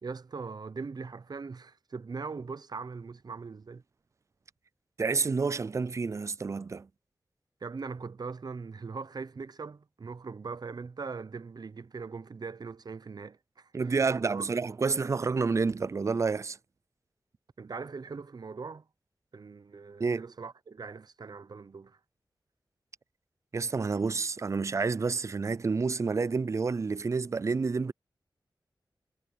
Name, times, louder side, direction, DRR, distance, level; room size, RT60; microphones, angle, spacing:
voice 1, 0.0-3.8 7.6-14.5 17.6-18.9 19.3-22.0, right 4 dB, 60° right, 0.7 m, -41 dB
voice 2, 5.0-6.9 13.7-16.6 20.0-20.2 23.5-27.9, right 4 dB, 40° right, 0.3 m, -29 dB
wide cardioid pair, 60°, 8 cm